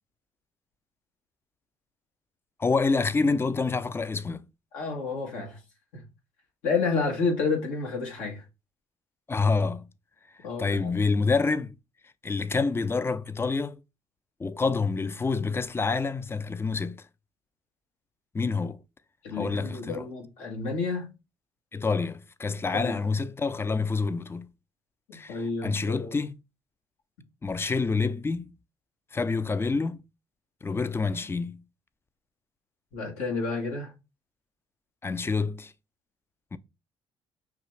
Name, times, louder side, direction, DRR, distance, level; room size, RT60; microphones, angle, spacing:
voice 1, 2.6-4.5 9.3-9.9 10.6-11.7 12.2-13.8 14.4-17.1 18.3-18.8 19.3-20.1 21.7-24.5 25.1-26.4 27.4-28.6 29.1-30.0 30.6-31.6 35.0-35.7 36.5-36.6, left 4 dB, 20° left, 0.4 m, -27 dB
voice 2, 4.7-5.6 5.9-6.0 6.6-8.4 10.4-10.9 19.2-21.1 22.7-23.0 25.1-26.2 32.9-33.9, left 4 dB, 80° left, 1.5 m, -30 dB
5.6 x 2.4 x 3.2 m
supercardioid pair, 65°, 12 cm